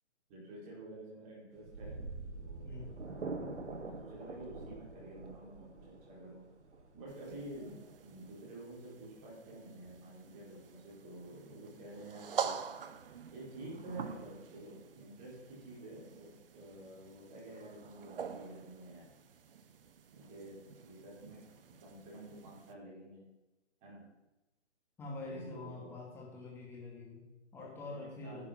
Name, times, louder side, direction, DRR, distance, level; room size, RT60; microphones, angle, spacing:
voice 1, 0.3-2.0 2.3-2.8 3.8-6.4 6.9-12.6 13.3-19.1 20.1-21.4 21.8-23.2 23.8-24.0 25.2-26.0 27.7-28.5, right 1 dB, 20° right, -5 dB, 4.4 m, -50 dB
sound 1, 1.6-8.4, right 3 dB, 85° right, 1.9 m, -45 dB
voice 2, 2.6-3.0 25.0-28.5, left 3 dB, 5° left, -3 dB, 1.8 m, -46 dB
sound 2, 7.1-22.7, right 7 dB, 55° right, 0.9 m, -46 dB
11.0 x 8.7 x 5.8 m, 1.0 s
hypercardioid pair, 160°, 34 cm